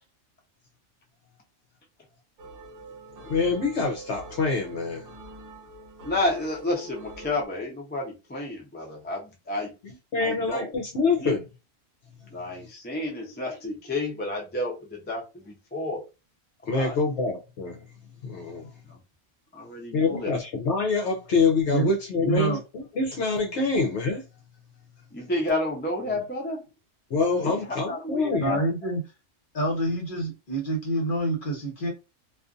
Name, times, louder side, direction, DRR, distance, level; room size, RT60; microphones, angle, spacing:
sound 1, 2.4-7.5, right 2 dB, 50° right, 0.8 m, -44 dB
voice 1, 3.2-5.1 9.8-11.4 16.7-17.8 18.2-18.7 19.9-24.3 27.1-28.6, left 4 dB, 65° left, 0.9 m, -26 dB
voice 2, 6.0-9.7 10.2-11.3 12.3-16.0 16.7-17.0 18.9-19.0 19.5-20.4 25.1-26.6 27.4-28.6, left 2 dB, 15° left, 0.4 m, -31 dB
voice 3, 22.2-22.6 26.0-26.2 28.3-29.0 29.5-31.9, right 1 dB, 45° left, 1.1 m, -27 dB
2.4 x 2.4 x 2.5 m
omnidirectional pair, 1.3 m